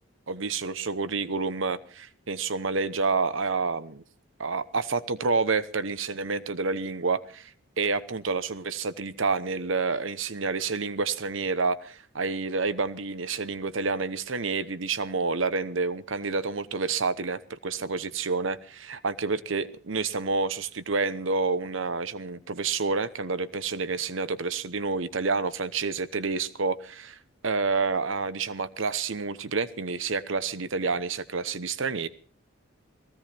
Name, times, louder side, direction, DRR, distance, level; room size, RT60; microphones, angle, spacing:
voice 1, 0.3-4.0 4.4-27.2 27.4-32.1, right 4 dB, 70° right, 14 dB, 1.0 m, -29 dB
19.0 x 16.0 x 4.3 m, 0.40 s
head